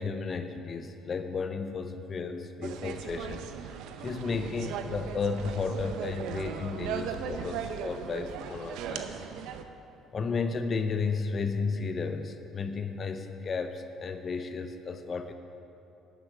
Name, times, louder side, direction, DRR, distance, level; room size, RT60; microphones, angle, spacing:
voice 1, 0.0-9.2 10.1-15.3, left 4 dB, 40° left, 8 dB, 0.8 m, -33 dB
sound 1, 2.6-9.6, right 8 dB, 75° right, 0.6 m, -38 dB
11.0 x 8.1 x 6.1 m, 2.8 s
supercardioid pair, 75°, 0 cm